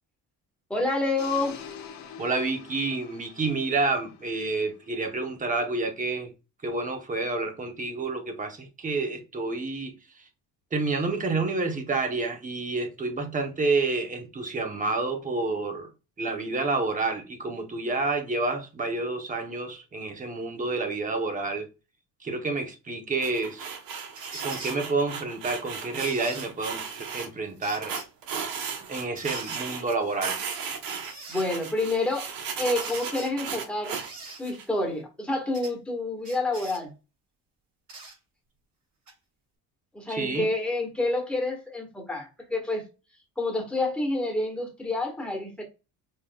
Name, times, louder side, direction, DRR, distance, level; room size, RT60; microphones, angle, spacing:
voice 1, 0.7-1.6 31.3-32.3 32.6-34.0 34.4-36.9 39.9-42.8 43.4-45.6, left 2 dB, 5° left, 1.4 m, -28 dB
sound 1, 1.2-5.2, left 7 dB, 50° left, 0.9 m, -45 dB
voice 2, 2.2-6.3 6.6-10.0 10.7-15.9 16.2-21.7 22.2-23.7 24.4-27.9 28.9-30.4 40.1-40.5, right 3 dB, 20° right, 0.8 m, -29 dB
sound 2, 23.2-27.3 27.8-29.9 30.2-34.6, right 6 dB, 65° right, 1.0 m, -35 dB
sound 3, 24.1-24.8 26.0-26.5 27.6-28.1 29.2-29.6 30.9-31.5 32.6-33.3 33.9-34.4 35.5-35.7 36.2-36.8 37.9-38.2 39.1-39.2, right 3 dB, 50° right, 2.8 m, -42 dB
5.4 x 3.5 x 2.3 m
cardioid pair, 155°, 37 cm